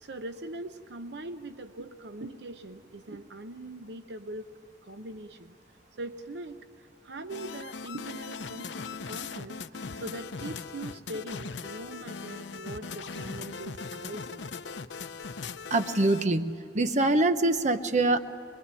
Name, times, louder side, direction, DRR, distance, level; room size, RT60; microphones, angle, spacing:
voice 1, 0.0-4.5 4.8-5.5 6.0-9.6 10.0-14.4, right 2 dB, 70° right, 9 dB, 0.8 m, -41 dB
sound 1, 7.3-16.2, left 4 dB, 90° left, 0.8 m, -39 dB
voice 2, 15.7-18.2, right 2 dB, 40° right, 9 dB, 1.0 m, -24 dB
23.0 x 22.5 x 9.8 m, 2.6 s
head